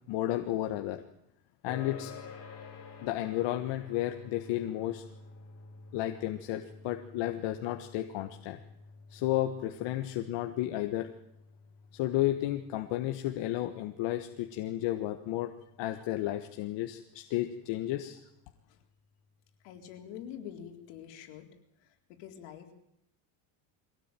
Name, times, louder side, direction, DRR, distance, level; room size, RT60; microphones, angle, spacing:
voice 1, 0.1-1.0 1.6-2.1 3.0-5.0 5.9-8.6 9.1-11.1 11.9-15.5 15.8-18.2, left 14 dB, 60° left, 6 dB, 1.6 m, -32 dB
sound 1, 1.7-16.6, left 4 dB, 30° left, 6.0 m, -51 dB
voice 2, 19.6-21.5 21.8-22.7, left 9 dB, 75° left, 4 dB, 4.1 m, -46 dB
23.0 x 17.5 x 9.2 m, 0.79 s
cardioid pair, 160°, 49 cm